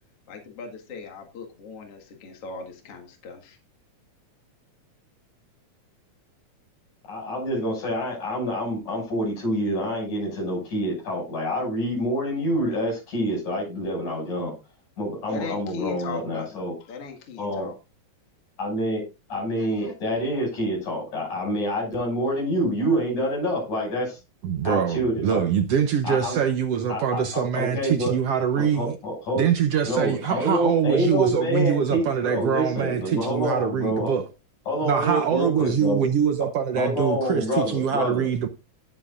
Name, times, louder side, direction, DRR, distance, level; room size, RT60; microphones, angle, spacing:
voice 1, 0.3-3.6 15.3-17.8, left 5 dB, 55° left, 2.7 m, -38 dB
voice 2, 7.1-14.5 15.0-16.7 17.4-17.7 18.6-24.2 24.6-25.4 26.0-26.4 26.9-28.1 28.6-29.5 29.9-34.1 34.7-36.0 36.8-38.3, equal, 80° left, 7.8 m, -27 dB
voice 3, 24.4-29.0 29.4-34.2 34.8-38.5, right 8 dB, 70° right, 1.6 m, -24 dB
18.0 x 7.5 x 2.5 m
omnidirectional pair, 3.4 m